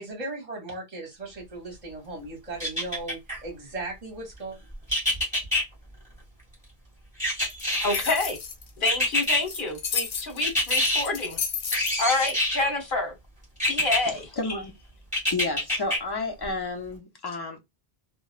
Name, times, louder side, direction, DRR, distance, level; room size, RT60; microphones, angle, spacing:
voice 1, 0.0-4.6, right 2 dB, 40° right, 0.8 m, -37 dB
sound 1, 2.6-3.4 4.9-5.6 7.2-8.2 8.9-9.4 10.4-11.0 11.7-12.7 13.6-14.0 15.1-16.0 16.4-16.5, left 1 dB, 5° right, 1.8 m, -25 dB
sound 2, 7.5-12.3, left 6 dB, 70° left, 0.8 m, -32 dB
voice 2, 7.8-8.4 8.8-11.4 12.0-13.1 13.6-14.3, left 2 dB, 55° left, 1.1 m, -27 dB
voice 3, 13.8-14.8 15.3-17.6, left 3 dB, 35° left, 0.4 m, -32 dB
3.1 x 2.1 x 2.3 m
omnidirectional pair, 1.1 m